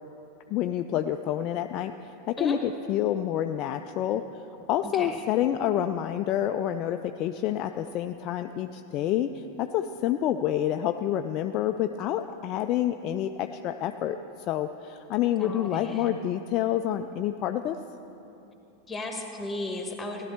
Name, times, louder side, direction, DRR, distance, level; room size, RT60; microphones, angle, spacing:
voice 1, 0.5-4.3 4.7-14.2 14.5-17.8, left 11 dB, 35° left, 7 dB, 0.3 m, -28 dB
voice 2, 4.8-5.2 15.4-16.1 18.9-20.3, left 2 dB, 10° left, 3 dB, 1.5 m, -35 dB
16.5 x 11.5 x 3.3 m, 2.9 s
figure-of-eight pair, 90°, 0 cm